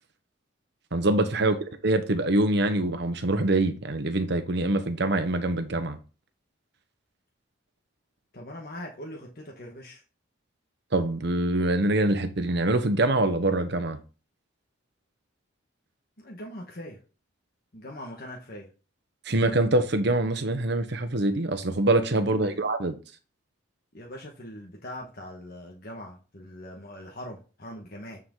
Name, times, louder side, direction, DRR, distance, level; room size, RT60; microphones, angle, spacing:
voice 1, 0.9-1.6 1.8-6.0 10.9-14.0 19.2-22.9, right 2 dB, 60° right, 1.1 m, -24 dB
voice 2, 8.3-10.0 16.2-17.0 17.7-18.7 22.3-22.6 23.9-28.2, left 1 dB, 50° left, 1.4 m, -41 dB
9.0 x 4.8 x 3.8 m
head